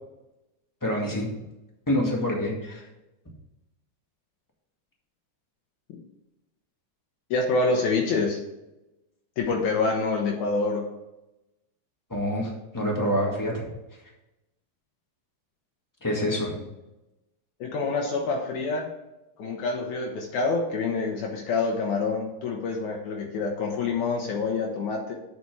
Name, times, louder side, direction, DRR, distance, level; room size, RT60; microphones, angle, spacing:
voice 1, 0.8-1.3 1.9-2.8 12.1-13.6 16.0-16.6, equal, 10° left, -1 dB, 1.1 m, -26 dB
voice 2, 7.3-8.4 9.4-10.8 17.6-18.9 19.4-25.1, left 3 dB, 75° left, 0 dB, 2.4 m, -26 dB
8.2 x 6.0 x 4.7 m, 0.98 s
omnidirectional pair, 3.6 m